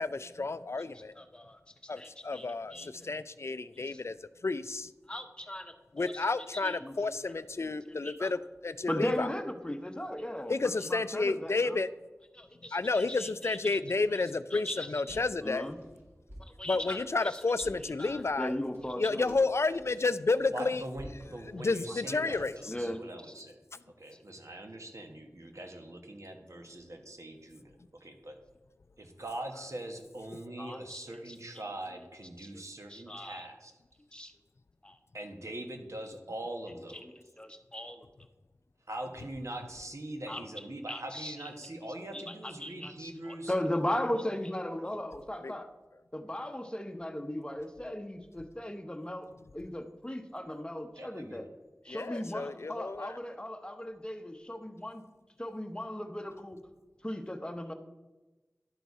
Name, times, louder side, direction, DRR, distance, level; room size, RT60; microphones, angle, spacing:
voice 1, 0.0-1.1 1.9-4.2 4.4-4.9 5.9-9.3 10.5-11.9 12.7-15.7 16.7-18.5 19.0-20.8 21.4-22.7 45.4-45.5 51.9-53.2, left 3 dB, 55° left, 15 dB, 0.3 m, -31 dB
voice 2, 0.9-1.6 2.0-3.1 3.7-4.0 5.1-7.3 7.9-8.3 8.9-11.8 12.3-13.8 14.1-14.2 14.5-15.8 16.4-19.4 21.9-23.4 30.6-32.1 32.4-32.6 32.9-33.5 34.1-34.3 34.8-35.0 36.7-38.1 40.3-45.7 46.1-51.5 51.8-55.0 55.4-56.6 57.0-57.7, left 1 dB, 15° left, 6 dB, 0.8 m, -38 dB
sound 1, 15.0-22.7, equal, 55° right, 2.9 m, -54 dB
voice 3, 20.5-23.6 24.0-27.7 28.0-28.4 29.0-33.7 35.1-37.0 38.9-43.5 51.0-51.5, right 1 dB, 70° right, 4 dB, 1.1 m, -42 dB
11.5 x 4.0 x 4.7 m, 1.1 s
wide cardioid pair, 50°, 5 cm